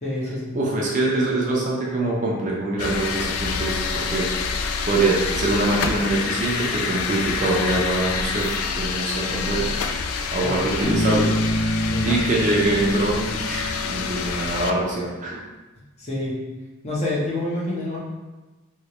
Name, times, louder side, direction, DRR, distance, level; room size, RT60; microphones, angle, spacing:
voice 1, 0.0-0.6 10.4-10.7 11.9-12.2 16.0-16.4 16.8-18.0, left 1 dB, 30° left, -6 dB, 0.8 m, -27 dB
voice 2, 0.5-4.3 4.8-8.5 8.7-9.7 10.3-11.3 12.0-15.4, right 2 dB, 35° right, -4 dB, 0.6 m, -24 dB
sound 1, 2.8-14.7, left 5 dB, 85° left, 0.3 m, -27 dB
Bass guitar, 10.8-14.6, equal, 70° left, 0.7 m, -26 dB
3.1 x 2.9 x 2.9 m, 1.2 s
head